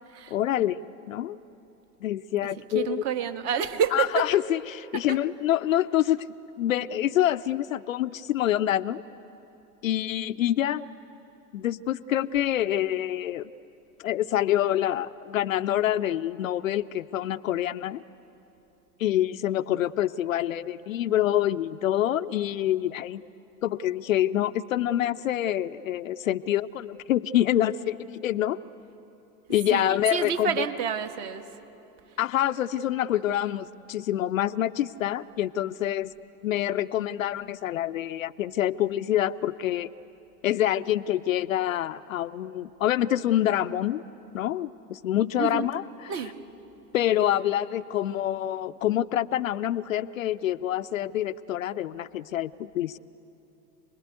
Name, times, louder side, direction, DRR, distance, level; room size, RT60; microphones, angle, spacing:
voice 1, 0.3-1.4 2.0-3.0 3.9-6.3 6.6-9.0 9.8-10.8 11.5-13.5 14.0-18.0 19.0-23.2 23.6-28.6 29.5-30.7 32.2-36.1 36.4-39.9 40.4-44.0 44.3-45.8 46.9-53.0, left 12 dB, 55° left, 13 dB, 0.5 m, -26 dB
voice 2, 2.4-4.4 4.9-5.2 29.5-31.5 45.4-45.7 46.1-46.4, right 7 dB, 40° right, 8 dB, 1.4 m, -29 dB
28.0 x 20.5 x 8.2 m, 2.9 s
figure-of-eight pair, 100°, 50 cm